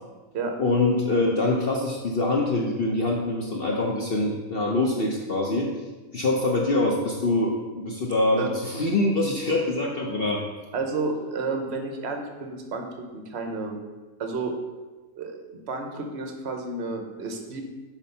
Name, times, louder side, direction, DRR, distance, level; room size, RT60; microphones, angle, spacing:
voice 1, 0.6-5.7 6.1-10.4, left 2 dB, 65° left, -1 dB, 0.5 m, -24 dB
voice 2, 10.7-12.9 13.1-13.8 14.2-14.6 15.2-17.6, right 3 dB, 50° right, 4 dB, 0.8 m, -31 dB
6.0 x 4.4 x 5.4 m, 1.2 s
omnidirectional pair, 2.0 m